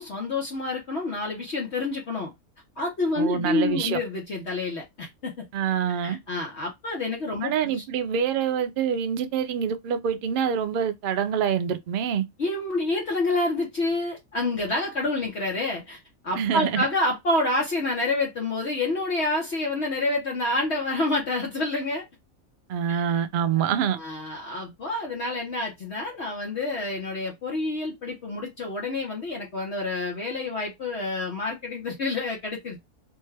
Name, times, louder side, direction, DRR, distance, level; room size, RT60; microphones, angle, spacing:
voice 1, 0.0-2.3 2.8-5.5 6.0-7.5 12.4-22.0 22.9-23.0 23.9-32.8, left 2 dB, 55° left, 1.1 m, -28 dB
voice 2, 3.2-4.0 5.5-6.2 7.4-12.2 16.4-16.9 22.7-24.0, right 8 dB, 75° right, 0.4 m, -26 dB
3.5 x 2.2 x 3.2 m
omnidirectional pair, 1.5 m